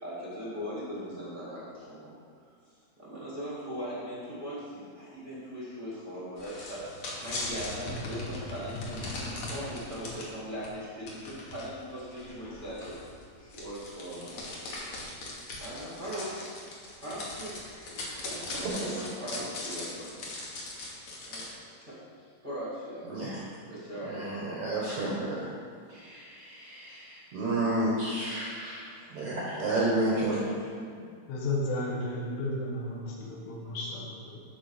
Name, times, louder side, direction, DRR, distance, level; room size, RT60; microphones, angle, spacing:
voice 1, 0.0-2.1 3.0-14.4 15.2-15.3 15.6-16.5 17.0-20.3 21.3-21.5 21.8-22.0 22.4-23.4 23.7-24.3 29.5-29.9 30.3-31.1, equal, 60° right, -9 dB, 0.5 m, -40 dB
sound 1, 6.4-10.3 10.6-10.7 11.1-21.5, left 2 dB, 65° left, 1.7 m, -39 dB
voice 2, 18.6-19.0 23.0-23.4 24.0-25.5 25.9-30.4, right 2 dB, 80° right, -5 dB, 1.6 m, -31 dB
voice 3, 31.3-34.4, left 2 dB, 85° left, -3 dB, 3.8 m, -33 dB
11.5 x 4.2 x 6.6 m, 2.1 s
omnidirectional pair, 5.3 m